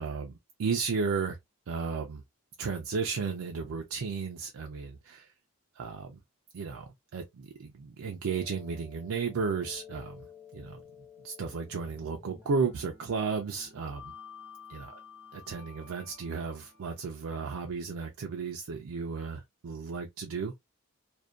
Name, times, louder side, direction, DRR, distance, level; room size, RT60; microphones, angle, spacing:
voice 1, 0.0-1.4 1.7-2.2 2.6-5.3 5.8-6.2 6.5-10.8 11.2-14.1 14.7-14.9 15.3-20.5, right 5 dB, 80° right, 0.4 m, -34 dB
sound 1, 8.3-18.4, left 6 dB, 10° right, 0.5 m, -52 dB
2.5 x 2.1 x 2.3 m
head